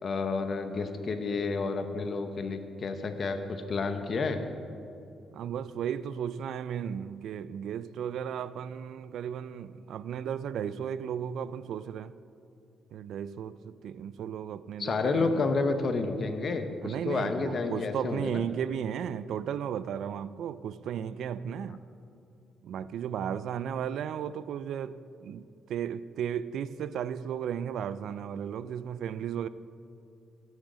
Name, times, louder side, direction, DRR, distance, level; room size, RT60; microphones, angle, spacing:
voice 1, 0.0-4.4 14.8-18.5, left 4 dB, 40° left, 0.8 m, -30 dB
voice 2, 5.3-12.2 12.9-15.5 16.8-21.8 22.6-25.4 25.7-29.5, right 8 dB, 75° right, 0.3 m, -35 dB
16.5 x 6.4 x 5.0 m
cardioid pair, 140°, 0 cm